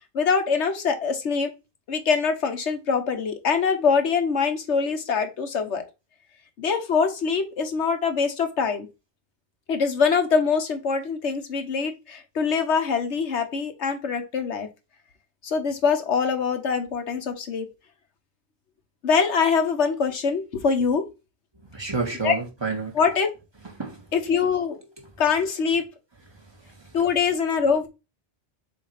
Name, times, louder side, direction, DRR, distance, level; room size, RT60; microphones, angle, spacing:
voice 1, 0.1-1.5 1.9-5.8 6.6-8.9 9.7-14.7 15.4-17.7 19.0-21.1 22.2-22.3 22.9-23.3 24.1-24.8 25.2-25.9 26.9-27.9, left 5 dB, 85° left, 1.4 m, -23 dB
voice 2, 21.7-23.0 23.7-24.1 26.3-27.0, right 4 dB, 25° right, 1.6 m, -31 dB
7.1 x 2.8 x 4.9 m
omnidirectional pair, 1.1 m